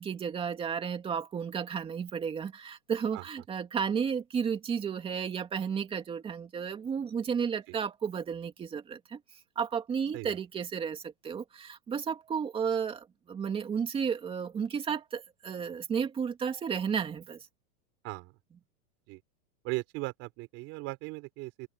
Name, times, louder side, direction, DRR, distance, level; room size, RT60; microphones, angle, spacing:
voice 1, 0.0-9.2 9.6-17.5, right 7 dB, 10° right, 2.5 m, -33 dB
voice 2, 19.6-21.7, right 23 dB, 30° right, 4.5 m, -38 dB
open air
supercardioid pair, 170°, 45 cm